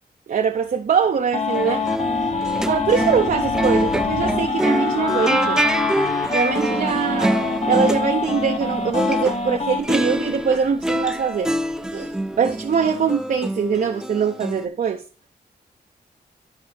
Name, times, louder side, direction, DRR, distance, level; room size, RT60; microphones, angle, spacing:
voice 1, 0.3-1.9 2.7-5.6 6.3-7.4 7.7-11.5 11.9-15.0, right 6 dB, 55° right, 0.7 m, -22 dB
sound 1, 1.3-9.8, left 4 dB, 40° left, 1.1 m, -25 dB
sound 2, 1.4-13.3, left 1 dB, 20° left, 1.5 m, -35 dB
sound 3, 1.4-9.4 9.8-14.7, right 1 dB, 5° right, 0.4 m, -25 dB
11.5 x 5.3 x 3.4 m
wide cardioid pair, 140°, 17 cm